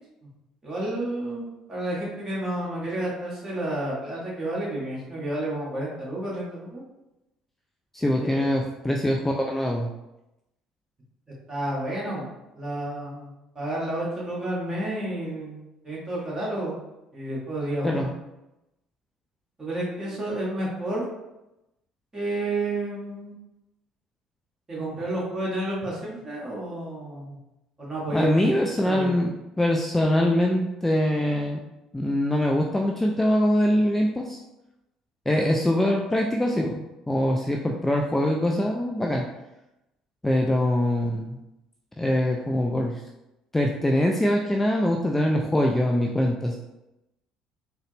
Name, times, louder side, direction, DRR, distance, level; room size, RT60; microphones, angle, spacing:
voice 1, 0.6-6.8 8.1-8.5 11.5-12.3 12.5-16.8 17.1-18.1 19.6-21.0 22.1-23.3 24.7-27.4 27.8-28.4 28.8-29.2, right 1 dB, 25° right, -5 dB, 1.4 m, -31 dB
voice 2, 7.9-9.9 17.8-18.1 28.1-29.3 29.6-31.6 31.9-34.4 35.3-39.3 40.2-41.4 42.0-43.0 43.5-46.6, left 1 dB, 10° left, 0 dB, 0.3 m, -23 dB
3.9 x 2.0 x 3.2 m, 0.95 s
figure-of-eight pair, 55°, 2 cm